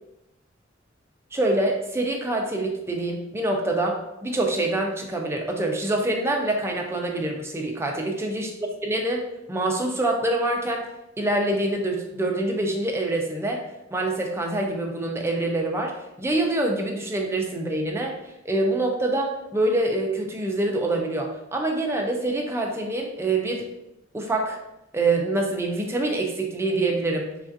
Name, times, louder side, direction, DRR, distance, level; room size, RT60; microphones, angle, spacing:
voice 1, 1.3-9.2 9.5-10.8 11.2-13.6 13.9-15.9 16.2-18.1 18.5-23.6 24.1-24.6 24.9-27.3, right 2 dB, 10° right, 1 dB, 0.3 m, -25 dB
3.3 x 2.4 x 2.5 m, 0.88 s
head